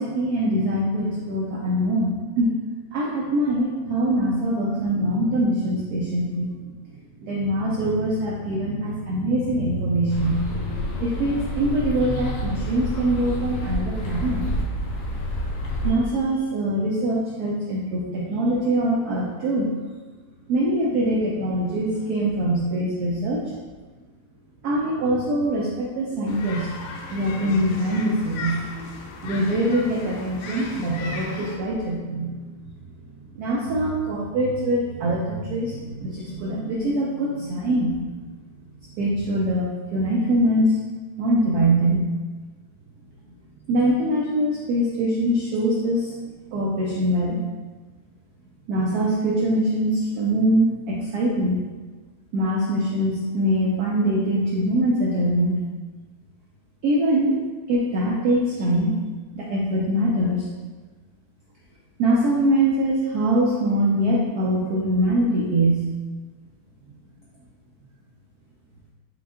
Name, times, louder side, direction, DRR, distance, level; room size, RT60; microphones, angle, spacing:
voice 1, 0.0-2.6 2.9-6.5 7.2-14.4 15.8-19.7 20.5-23.4 24.6-26.7 27.1-28.6 29.2-32.5 33.3-37.9 39.0-40.8 41.2-42.0 43.7-46.1 46.5-47.4 48.7-51.6 52.3-55.6 56.8-58.9 59.3-60.5 62.0-65.8, right 1 dB, 80° right, -3 dB, 0.8 m, -23 dB
sound 1, 10.1-15.9, equal, 70° left, 1.2 m, -28 dB
sound 2, 26.3-31.6, left 4 dB, 90° left, 1.5 m, -37 dB
5.1 x 2.3 x 3.6 m, 1.3 s
omnidirectional pair, 2.3 m